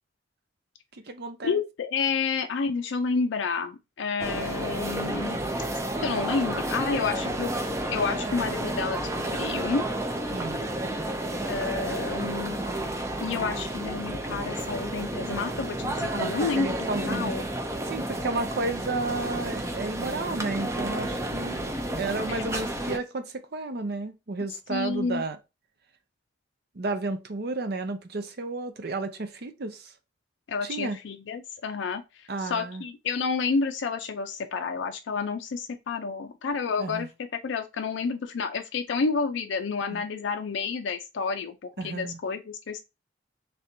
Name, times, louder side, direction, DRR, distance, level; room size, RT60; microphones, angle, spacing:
voice 1, 0.9-1.6 10.3-10.6 16.1-17.3 17.8-21.6 22.0-25.4 26.7-29.9 30.6-31.0 32.3-32.8 36.8-37.1 39.9-40.0 41.8-42.2, right 3 dB, 55° right, 0.6 m, -32 dB
voice 2, 1.4-5.4 6.0-7.5 7.9-9.8 11.5-12.6 13.2-17.4 22.3-22.4 24.7-25.2 30.5-37.1 37.4-42.8, left 5 dB, 70° left, 0.4 m, -30 dB
sound 1, 4.2-23.0, right 1 dB, 15° right, 0.5 m, -31 dB
3.4 x 2.6 x 4.3 m
head